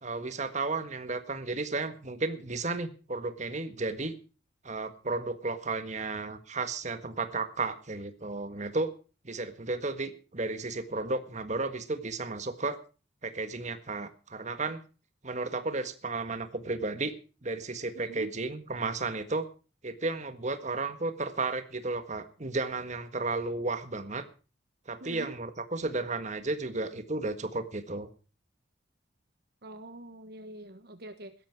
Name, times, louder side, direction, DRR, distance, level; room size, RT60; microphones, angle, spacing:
voice 1, 0.0-4.1 4.6-8.9 9.2-12.8 13.2-14.8 15.2-17.1 17.4-19.5 19.8-24.3 24.9-28.1, right 3 dB, 40° right, 10 dB, 1.6 m, -33 dB
voice 2, 17.9-18.3 25.0-25.3 29.6-31.3, right 2 dB, 55° right, 9 dB, 1.3 m, -44 dB
16.5 x 13.0 x 4.7 m, 0.36 s
head